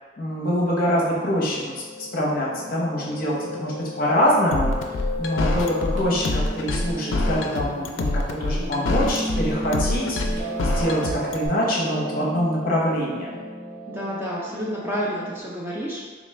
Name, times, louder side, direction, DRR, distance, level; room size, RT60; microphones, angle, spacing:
voice 1, 0.2-1.6 2.0-4.7 5.2-13.4, equal, 45° left, -4 dB, 0.7 m, -24 dB
Piano, 0.9-15.4, equal, 70° right, 0.9 m, -34 dB
sound 1, 4.5-11.5, left 2 dB, 75° left, 0.4 m, -25 dB
voice 2, 13.9-16.0, equal, 10° right, -6 dB, 0.4 m, -29 dB
3.9 x 2.4 x 3.2 m, 1.4 s
head